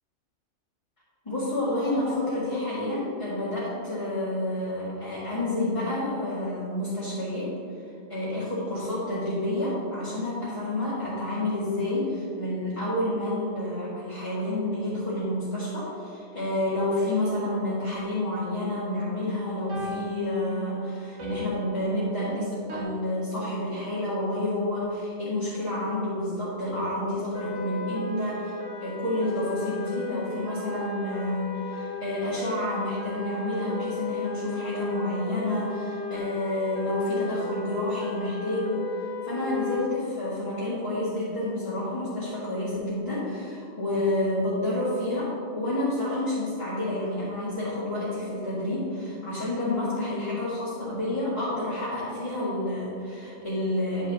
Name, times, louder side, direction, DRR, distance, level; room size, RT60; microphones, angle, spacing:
voice 1, 1.3-7.5 8.1-38.8 39.2-54.1, left 1 dB, 25° left, -11 dB, 2.1 m, -29 dB
sound 1, 19.7-22.8, left 2 dB, 90° right, 1.6 m, -39 dB
sound 2, 27.3-39.8, left 3 dB, 70° left, 1.5 m, -35 dB
10.0 x 6.2 x 3.6 m, 2.4 s
omnidirectional pair, 1.2 m